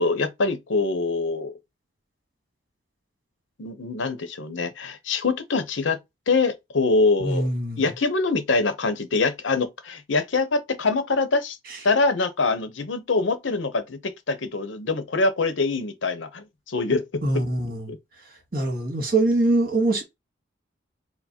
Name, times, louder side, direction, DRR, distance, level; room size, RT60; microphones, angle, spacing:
voice 1, 0.0-1.5 3.6-6.0 6.3-7.5 7.8-11.6 11.8-17.4 17.9-18.0, left 3 dB, 80° left, 0.7 m, -24 dB
voice 2, 7.2-7.8 11.7-11.8 17.2-17.9 18.2-20.0, right 2 dB, 50° right, 1.6 m, -23 dB
4.5 x 2.0 x 4.2 m
head